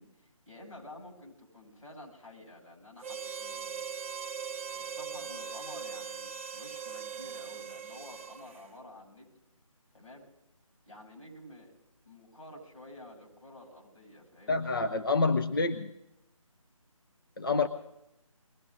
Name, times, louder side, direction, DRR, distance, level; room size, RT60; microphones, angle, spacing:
voice 1, 0.0-3.8 4.7-9.3 9.9-10.3 10.9-11.7 12.0-14.7, left 1 dB, 75° left, -2 dB, 7.9 m, -50 dB
Harmonica, 3.0-8.7, right 6 dB, 25° right, 1.1 m, -40 dB
voice 2, 14.5-15.9 17.4-17.7, left 3 dB, 40° left, 7 dB, 0.6 m, -27 dB
22.0 x 17.0 x 3.8 m, 0.88 s
figure-of-eight pair, 160°, 18 cm